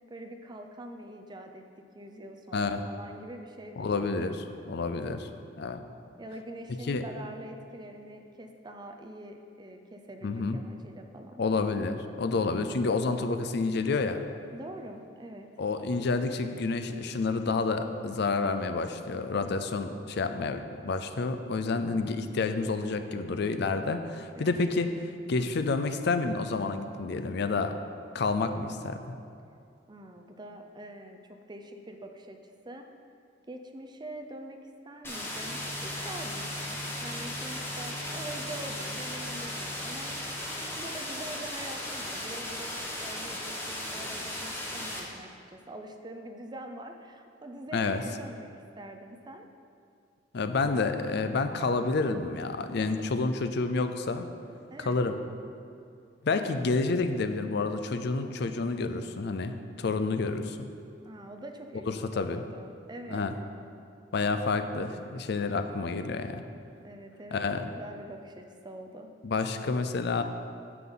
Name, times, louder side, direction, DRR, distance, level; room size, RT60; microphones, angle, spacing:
voice 1, 0.1-4.3 6.2-11.4 14.5-15.5 24.4-24.7 29.9-32.9 33.5-40.1 40.5-49.5 54.7-55.0 61.0-63.2 66.8-69.1, right 1 dB, 25° right, 4 dB, 0.5 m, -44 dB
voice 2, 2.5-2.8 3.8-5.3 5.6-5.8 6.9-7.0 10.2-10.6 11.4-14.2 15.6-24.9 25.3-27.7 28.1-29.1 47.7-48.0 50.3-54.3 54.8-55.2 56.2-60.7 61.9-62.4 63.1-63.3 64.1-66.4 67.3-67.7 69.2-70.2, left 3 dB, 60° left, 9 dB, 0.5 m, -29 dB
sound 1, 35.0-45.0, left 1 dB, 15° left, 1.3 m, -36 dB
Gong, 35.3-41.2, equal, 40° left, 2.1 m, -45 dB
9.2 x 7.9 x 3.9 m, 2.4 s
head